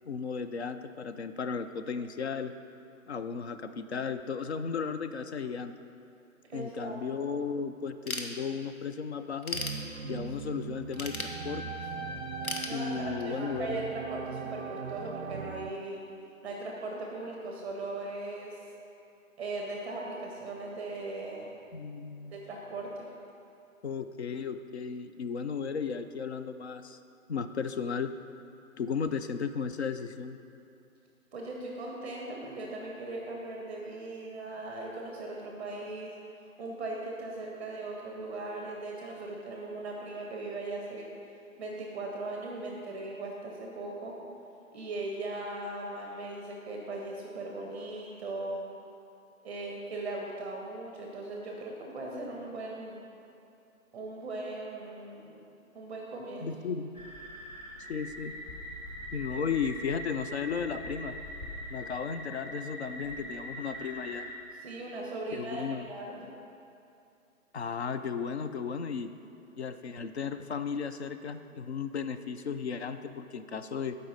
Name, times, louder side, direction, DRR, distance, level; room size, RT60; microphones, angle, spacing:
voice 1, 0.1-2.5 3.1-5.7 6.5-9.6 10.0-11.6 12.7-13.8 21.7-22.4 23.8-27.0 27.3-28.1 28.8-30.4 56.4-56.9 57.9-58.3 59.1-61.2 61.7-64.3 65.3-65.9 67.5-69.1 69.6-74.0, left 6 dB, 50° left, 10 dB, 0.5 m, -35 dB
voice 2, 6.5-7.3 12.6-16.0 16.4-18.6 19.4-21.6 22.3-23.1 31.3-36.1 36.6-41.1 41.6-44.1 44.7-48.6 49.4-53.0 53.9-55.4 55.7-56.5 64.6-66.3, right 2 dB, 5° right, -1 dB, 0.8 m, -39 dB
Ratchet pawl / Tools, 8.1-8.9 9.2-10.4 10.9-11.9 12.4-13.4, left 3 dB, 85° left, 1.1 m, -37 dB
sound 1, 9.5-15.7, right 5 dB, 50° right, 0.5 m, -39 dB
sound 2, 56.9-64.3, equal, 30° left, 1.8 m, -42 dB
13.5 x 5.3 x 4.1 m, 2.6 s
figure-of-eight pair, 150°, 42 cm